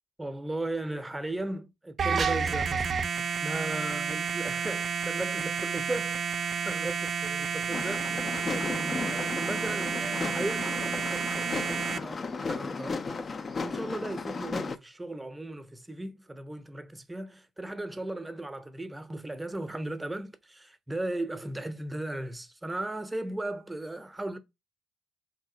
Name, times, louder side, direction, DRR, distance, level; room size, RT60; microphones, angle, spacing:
voice 1, 0.2-2.9 3.4-8.2 8.5-24.4, right 2 dB, 15° right, 0.7 m, -37 dB
sound 1, 2.0-12.0, right 6 dB, 45° right, 0.3 m, -30 dB
sound 2, 7.7-14.8, left 4 dB, 40° left, 0.4 m, -35 dB
3.2 x 2.6 x 3.7 m
hypercardioid pair, 45°, 0 cm